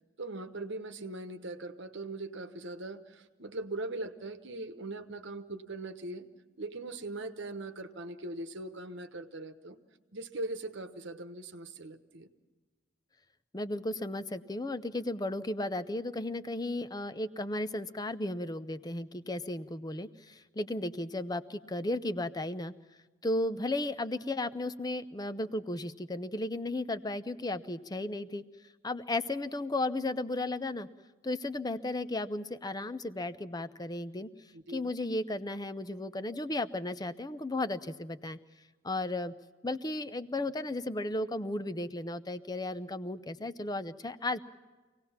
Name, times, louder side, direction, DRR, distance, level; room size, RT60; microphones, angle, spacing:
voice 1, 0.2-6.3 6.6-9.8 10.1-12.3 34.5-34.9, right 2 dB, 60° right, 8 dB, 1.1 m, -40 dB
voice 2, 13.5-22.7 23.2-28.4 28.8-30.9 31.2-34.3 34.7-38.4 38.8-39.3 39.6-44.4, left 2 dB, 20° left, 12 dB, 0.6 m, -34 dB
25.5 x 18.0 x 5.8 m, 1.3 s
head